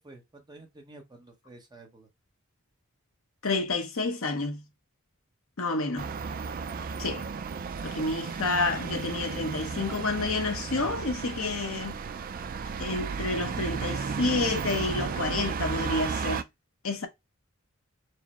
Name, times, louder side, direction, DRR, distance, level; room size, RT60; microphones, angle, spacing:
voice 1, 0.0-2.1, right 2 dB, 20° right, 0.8 m, -50 dB
voice 2, 3.4-4.6 5.6-6.1 7.0-7.2 7.8-12.0 12.8-16.4 16.8-17.1, left 3 dB, 70° left, 0.9 m, -29 dB
sound 1, 6.0-16.4, right 5 dB, 40° right, 0.3 m, -34 dB
4.8 x 2.0 x 4.1 m
head